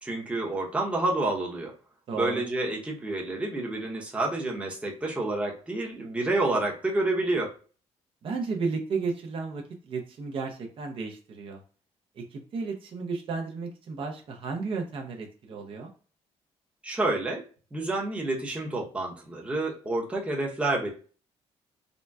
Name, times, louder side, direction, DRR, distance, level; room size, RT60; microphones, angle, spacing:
voice 1, 0.0-1.7 2.1-7.5 16.8-17.4 17.7-20.9, right 2 dB, 10° right, -2 dB, 0.8 m, -29 dB
voice 2, 2.1-2.4 8.2-11.6 12.2-15.9, right 4 dB, 50° right, 2 dB, 0.7 m, -33 dB
3.8 x 2.1 x 2.3 m, 0.38 s
cardioid pair, 125°, 11 cm